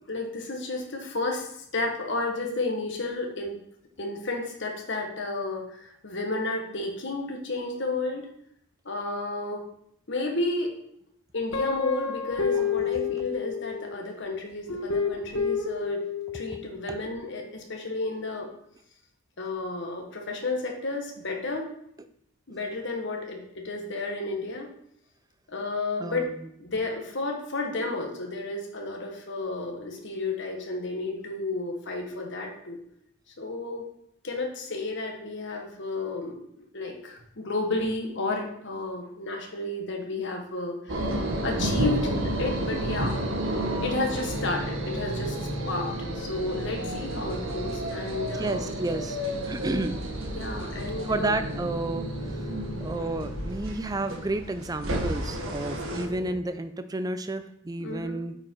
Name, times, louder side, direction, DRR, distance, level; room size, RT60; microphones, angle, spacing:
voice 1, 0.1-3.6 4.0-8.3 8.8-9.6 10.1-10.7 11.3-16.0 16.3-18.5 19.4-21.7 22.5-24.7 25.5-26.3 26.6-32.8 33.4-33.8 34.2-36.4 36.7-43.4 43.8-45.9 46.1-48.7 50.3-51.4 57.8-58.2, left 2 dB, 55° left, 2 dB, 1.5 m, -32 dB
Guitar, 11.5-14.0 14.7-16.6, left 6 dB, 75° left, 1.2 m, -29 dB
voice 2, 26.0-26.3 48.4-49.2 49.5-50.0 51.1-52.1 52.8-58.4, right 2 dB, 15° right, 10 dB, 0.4 m, -31 dB
sound 1, 40.9-56.0, right 1 dB, 70° right, 1.4 m, -32 dB
sound 2, 44.2-56.4, right 1 dB, 40° left, 3.6 m, -39 dB
8.6 x 4.8 x 4.6 m, 0.72 s
head